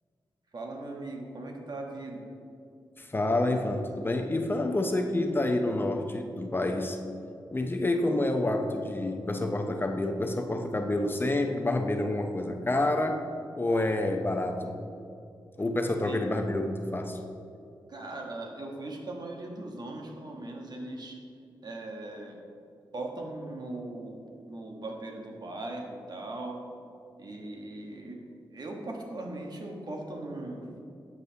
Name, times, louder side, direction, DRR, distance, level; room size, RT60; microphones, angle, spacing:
voice 1, 0.5-2.3 15.8-16.2 17.9-21.2 21.6-22.4 22.9-24.2 24.5-26.6 27.2-28.2 28.5-30.8, right 2 dB, 55° right, 1 dB, 1.1 m, -39 dB
voice 2, 3.0-7.0 7.5-13.2 13.5-14.8 15.6-17.2, left 2 dB, 25° left, 5 dB, 0.6 m, -28 dB
8.1 x 6.6 x 2.7 m, 2.5 s
cardioid pair, 60°, 8 cm